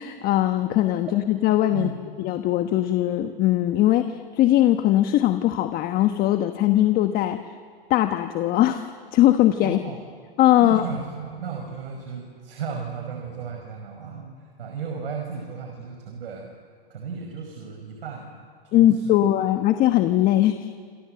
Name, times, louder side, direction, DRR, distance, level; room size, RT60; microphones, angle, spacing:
voice 1, 0.0-1.9 2.2-7.4 7.9-9.8 10.4-10.8 18.7-20.7, left 13 dB, 30° left, 8 dB, 1.2 m, -20 dB
voice 2, 9.6-10.0 10.6-16.5 16.9-18.4 18.6-19.5, right 6 dB, 75° right, 2 dB, 5.2 m, -35 dB
27.5 x 27.0 x 7.7 m, 2.1 s
hypercardioid pair, 130°, 29 cm